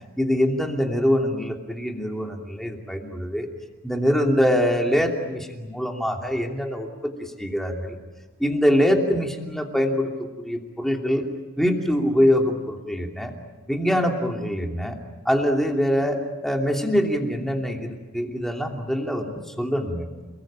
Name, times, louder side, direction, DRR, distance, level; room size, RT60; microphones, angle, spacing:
voice 1, 0.2-3.5 3.8-8.0 8.4-10.1 10.4-11.3 11.6-13.3 13.7-15.0 15.2-20.1, equal, ahead, 1 dB, 2.8 m, -24 dB
29.0 x 21.0 x 8.9 m, 1.2 s
head